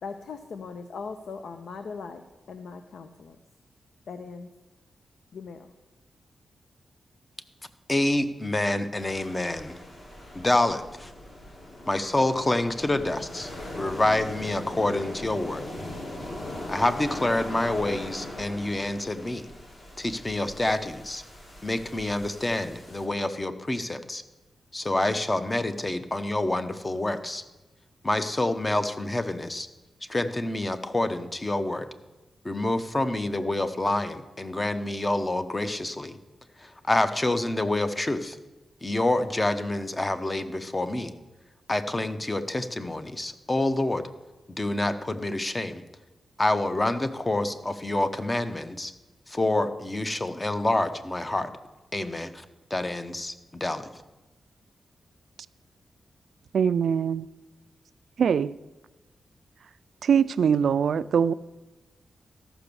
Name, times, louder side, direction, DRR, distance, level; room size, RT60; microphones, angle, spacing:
voice 1, 0.0-2.2 2.5-3.4 4.1-4.5 5.3-5.7, left 5 dB, 80° left, 0.6 m, -39 dB
voice 2, 7.9-9.8 10.3-11.1 11.9-13.5 13.8-15.6 16.7-19.5 20.0-21.2 21.6-24.2 24.7-27.4 28.0-29.7 30.1-31.9 32.4-36.2 36.6-38.4 38.8-41.1 41.7-44.1 44.6-45.8 46.4-48.9 49.3-51.5 51.9-52.4 52.7-53.9, left 2 dB, 20° left, 0.7 m, -27 dB
sound 1, 8.9-23.1, left 1 dB, 45° left, 2.4 m, -40 dB
voice 3, 56.5-57.3 58.2-58.5 60.0-61.3, right 7 dB, 80° right, 0.3 m, -22 dB
13.0 x 6.0 x 6.8 m
wide cardioid pair, 115°, 0 cm